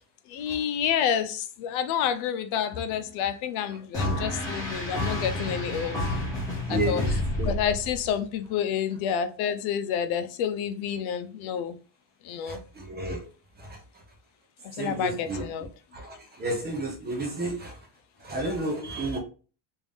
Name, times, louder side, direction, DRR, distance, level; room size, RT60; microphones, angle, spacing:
voice 1, 0.3-6.0 6.7-7.0 7.4-11.8 12.2-12.6 14.6-15.7, left 8 dB, 85° left, 0.7 m, -29 dB
sound 1, 3.9-8.2, left 1 dB, 10° left, 1.2 m, -29 dB
voice 2, 6.7-7.1 7.4-7.5 12.5-13.3 13.6-13.8 14.8-15.4 15.9-17.8 18.2-19.2, right 2 dB, 20° right, 0.5 m, -32 dB
3.4 x 2.6 x 3.4 m
cardioid pair, 175°, 47 cm